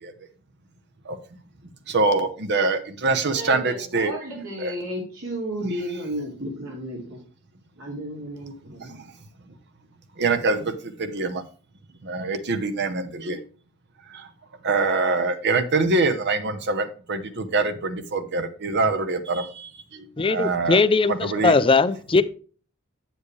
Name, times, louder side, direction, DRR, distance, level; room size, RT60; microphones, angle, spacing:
voice 1, 1.9-4.1 4.6-4.7 10.2-10.7 11.0-11.4 12.1-13.4 14.6-19.7 20.3-20.8 21.1-21.6, right 3 dB, 55° right, 1.0 m, -24 dB
voice 2, 3.3-7.2 7.8-9.0, equal, 70° right, 2.8 m, -33 dB
voice 3, 20.2-22.2, left 4 dB, 25° left, 0.5 m, -19 dB
8.4 x 7.3 x 3.3 m
head